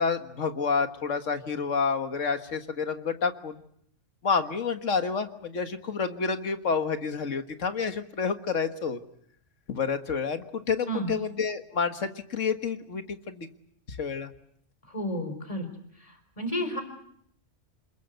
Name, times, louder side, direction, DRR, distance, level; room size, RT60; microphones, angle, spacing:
voice 1, 0.0-3.6 4.2-9.0 9.7-13.5 13.9-14.3, left 5 dB, 75° left, 8 dB, 1.9 m, -29 dB
voice 2, 14.9-15.7 16.0-16.8, equal, 25° left, 7 dB, 4.1 m, -32 dB
28.0 x 21.0 x 8.0 m, 0.71 s
omnidirectional pair, 1.3 m